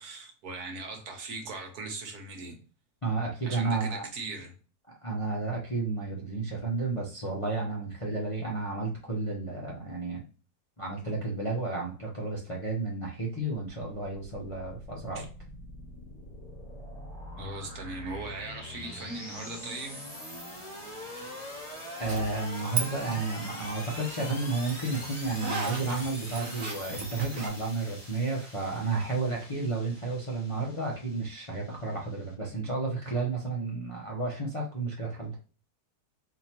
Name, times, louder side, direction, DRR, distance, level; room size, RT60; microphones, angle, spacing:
voice 1, 0.0-2.6 3.4-4.5 15.1-15.2 17.4-20.0, right 3 dB, 70° right, 3 dB, 1.4 m, -39 dB
voice 2, 3.0-4.1 5.0-10.2 10.8-15.3 22.0-35.3, right 3 dB, 30° left, -3 dB, 0.6 m, -32 dB
sound 1, 14.2-32.3, left 1 dB, ahead, 1.8 m, -43 dB
Zipper (clothing), 22.0-22.9 23.1-27.5, right 4 dB, 40° right, 0.9 m, -36 dB
4.2 x 2.9 x 2.8 m, 0.37 s
omnidirectional pair, 1.7 m